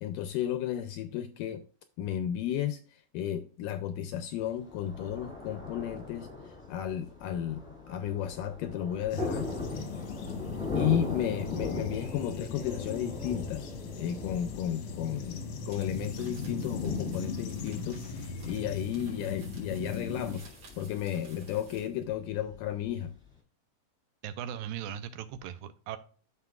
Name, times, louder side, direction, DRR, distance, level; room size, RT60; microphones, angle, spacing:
voice 1, 0.0-1.6 2.0-9.5 10.8-13.7 14.0-20.5 20.8-23.1, left 10 dB, 80° left, 10 dB, 1.9 m, -33 dB
Thunder, 4.4-23.3, left 3 dB, 5° left, 1.2 m, -41 dB
sound 1, 9.1-20.4, left 4 dB, 65° left, 1.6 m, -39 dB
sound 2, 15.6-22.0, right 3 dB, 50° right, 3.8 m, -55 dB
voice 2, 24.2-26.0, right 9 dB, 80° right, 11 dB, 2.3 m, -38 dB
14.0 x 4.7 x 2.3 m, 0.42 s
omnidirectional pair, 4.2 m